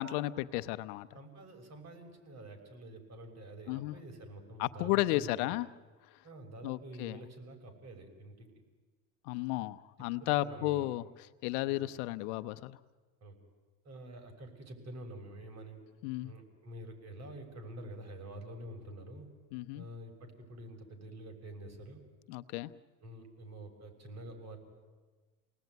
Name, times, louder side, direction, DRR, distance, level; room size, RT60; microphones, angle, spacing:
voice 1, 0.0-1.1 3.7-3.9 4.6-5.7 6.6-7.2 9.3-11.0 11.4-12.8 16.0-16.3 19.5-19.8 22.3-22.7, left 17 dB, 70° left, 13 dB, 1.0 m, -33 dB
voice 2, 1.1-5.5 6.2-8.5 10.2-10.9 11.7-11.9 13.2-13.4 13.8-15.8 16.2-19.3 19.7-22.0 23.0-24.6, right 1 dB, 35° right, 4 dB, 6.4 m, -48 dB
29.0 x 19.0 x 9.5 m, 1.4 s
supercardioid pair, 115°, 45 cm